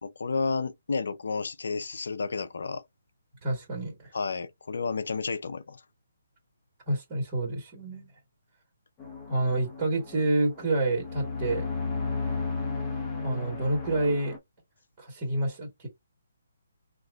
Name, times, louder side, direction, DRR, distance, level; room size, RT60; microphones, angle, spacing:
voice 1, 0.0-2.8 4.1-5.8, left 4 dB, 70° left, 0.6 m, -31 dB
voice 2, 3.4-4.1 6.9-8.1 9.3-11.7 13.2-14.4 15.0-15.9, right 2 dB, 30° right, 1.7 m, -28 dB
sound 1, 9.0-14.4, left 4 dB, 20° left, 1.0 m, -34 dB
2.9 x 2.5 x 3.5 m
figure-of-eight pair, 145°, 0 cm